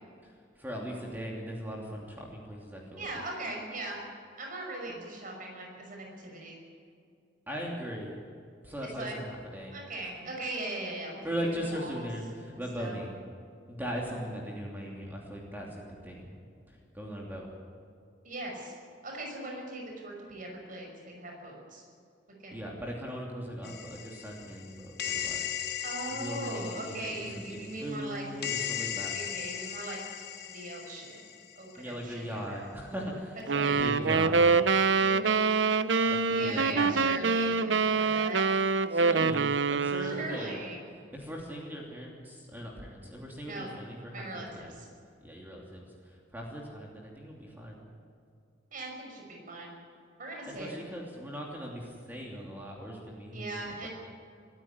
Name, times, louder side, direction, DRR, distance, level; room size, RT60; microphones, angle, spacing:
voice 1, 0.6-3.0 7.5-8.2 8.6-9.7 11.2-13.2 13.7-16.3 16.9-17.5 22.5-25.5 26.1-27.1 27.5-29.1 31.8-34.4 36.0-36.9 38.9-40.6 41.1-44.4 45.2-47.8 50.6-53.9, equal, 10° right, -2 dB, 3.0 m, -39 dB
voice 2, 3.0-4.0 4.4-6.6 9.0-9.2 9.7-11.2 11.6-12.0 12.8-13.0 14.1-14.2 18.2-18.7 19.0-21.8 22.4-22.6 25.8-28.2 29.1-30.0 30.5-31.3 31.6-32.7 33.5-33.9 35.0-35.5 36.3-38.4 39.1-39.2 40.0-40.8 43.5-43.7 44.1-44.9 48.7-49.7 50.2-50.9 53.3-53.9, right 2 dB, 45° right, 0 dB, 5.8 m, -39 dB
sound 1, 23.6-31.8, left 10 dB, 60° left, 1.2 m, -38 dB
sound 2, 33.5-40.3, right 4 dB, 70° right, 0.7 m, -25 dB
23.5 x 13.5 x 9.7 m, 2.4 s
head